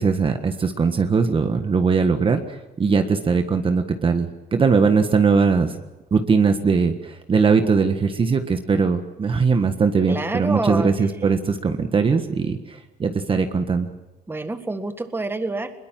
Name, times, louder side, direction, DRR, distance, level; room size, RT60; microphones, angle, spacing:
voice 1, 0.0-5.7 6.1-13.9, right 5 dB, 30° right, 7 dB, 1.6 m, -20 dB
voice 2, 10.1-10.9 14.3-15.8, right 2 dB, 15° right, 9 dB, 1.8 m, -27 dB
21.5 x 21.5 x 7.6 m, 1.1 s
cardioid pair, 110°, 17 cm